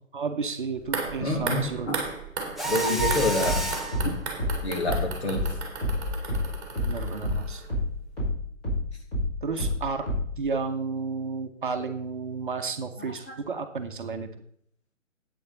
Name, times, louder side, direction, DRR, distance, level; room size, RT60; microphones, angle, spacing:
voice 1, 0.1-1.9 6.8-7.6 9.4-10.1 10.4-14.3, right 4 dB, 40° right, 6 dB, 1.0 m, -32 dB
sound 1, 0.8-7.9 8.2-8.3, right 4 dB, 20° right, 2.2 m, -36 dB
voice 2, 1.2-2.0 2.6-3.7 4.0-4.1 4.6-5.4, left 2 dB, 55° left, 1 dB, 2.8 m, -27 dB
Mechanisms, 2.6-4.0, right 2 dB, ahead, 0.3 m, -29 dB
sound 2, 3.0-7.9 8.2-10.4, left 1 dB, 20° left, 4.9 m, -28 dB
10.0 x 8.7 x 4.1 m, 0.64 s
figure-of-eight pair, 140°, 39 cm